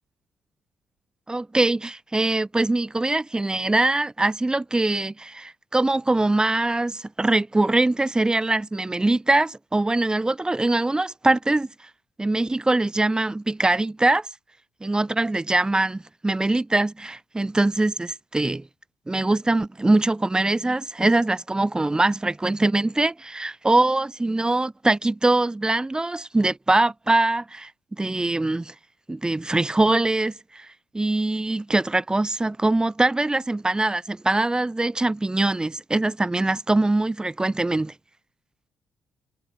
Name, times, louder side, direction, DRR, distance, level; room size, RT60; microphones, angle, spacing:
voice 1, 1.3-11.9 12.2-14.3 14.8-18.7 19.1-28.7 29.1-30.7 30.9-37.9, right 2 dB, 20° right, 5.6 m, -23 dB
hypercardioid pair, 45°, 4 cm